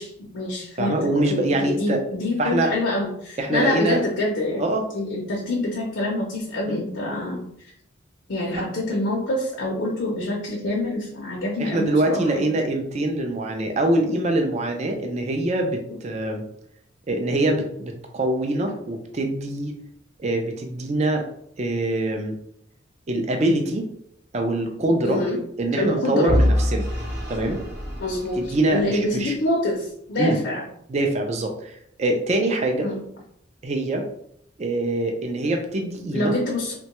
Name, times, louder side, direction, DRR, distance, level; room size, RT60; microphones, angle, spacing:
voice 1, 0.0-7.4 8.3-12.5 25.0-25.4 25.7-26.4 28.0-30.6 32.8-33.0 36.1-36.7, left 1 dB, 70° left, -2 dB, 0.6 m, -26 dB
voice 2, 0.8-2.0 2.4-2.7 3.4-4.0 4.6-4.8 6.7-6.8 8.5-8.6 11.6-16.4 17.1-19.7 20.2-21.3 21.6-22.3 23.1-23.9 24.3-25.2 25.6-26.9 27.3-27.6 28.4-29.3 30.2-30.4 30.9-31.7 32.0-32.9 33.6-34.1 34.6-36.3, right 1 dB, 35° right, 3 dB, 0.4 m, -24 dB
Vehicle / Engine, 26.3-29.3, left 1 dB, 55° right, 0.8 m, -25 dB
3.0 x 2.2 x 2.9 m, 0.70 s
head